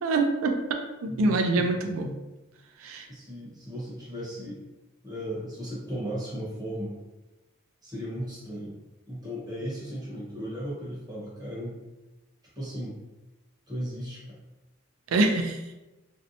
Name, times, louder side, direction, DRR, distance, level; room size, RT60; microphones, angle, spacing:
voice 1, 0.0-0.6 1.0-2.1 2.8-3.1 15.1-15.7, right 2 dB, 90° right, 4 dB, 0.4 m, -25 dB
voice 2, 1.1-1.7 3.1-4.6 5.0-7.0 7.8-8.8 9.1-11.8 12.6-13.0 13.7-14.4, equal, 20° right, -7 dB, 0.9 m, -36 dB
2.6 x 2.1 x 2.6 m, 1.0 s
head